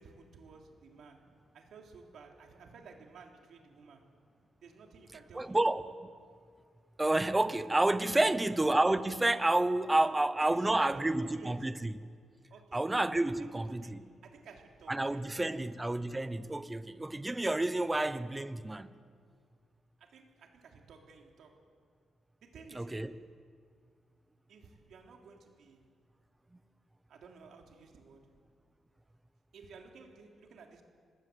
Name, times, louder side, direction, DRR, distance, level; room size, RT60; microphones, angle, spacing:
voice 1, 0.0-4.1 4.6-5.6 8.1-8.4 9.9-11.7 12.5-12.9 13.4-15.6 20.0-21.6 22.4-23.1 24.5-25.8 27.1-28.3 29.5-30.8, right 4 dB, 70° right, 2 dB, 3.4 m, -54 dB
voice 2, 5.3-6.1 7.0-11.9 12.7-14.0 14.9-18.9 22.7-23.1, right 2 dB, 10° right, 13 dB, 0.8 m, -29 dB
26.0 x 21.0 x 8.1 m, 2.1 s
wide cardioid pair, 165°, 0 cm